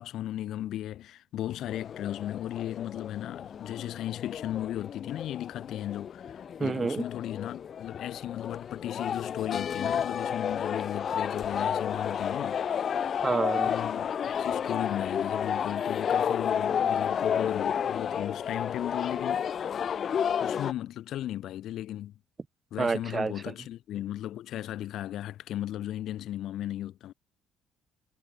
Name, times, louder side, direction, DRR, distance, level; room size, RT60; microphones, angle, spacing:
voice 1, 0.0-12.6 13.6-19.5 20.4-22.1 22.7-27.1, left 12 dB, 65° left, 1.2 m, -36 dB
sound 1, 1.7-20.7, left 8 dB, 45° left, 0.8 m, -31 dB
voice 2, 6.6-7.0 13.2-13.7 22.8-23.3, right 4 dB, 25° right, 0.7 m, -28 dB
cardioid pair, 120°, 0 cm